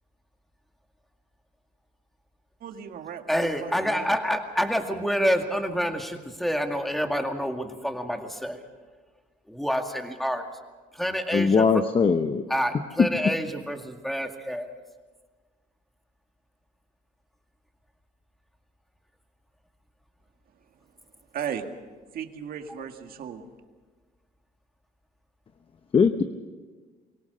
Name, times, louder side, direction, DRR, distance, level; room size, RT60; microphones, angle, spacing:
voice 1, 2.6-4.1 21.3-21.7 22.1-23.5, right 8 dB, 60° right, 6 dB, 1.9 m, -36 dB
voice 2, 3.3-8.6 9.5-10.5 11.0-11.7 12.5-14.7, equal, ahead, 4 dB, 2.1 m, -27 dB
voice 3, 11.3-12.4 25.9-26.2, left 5 dB, 30° left, 9 dB, 0.9 m, -20 dB
23.5 x 17.5 x 6.6 m, 1.4 s
cardioid pair, 110°, 17 cm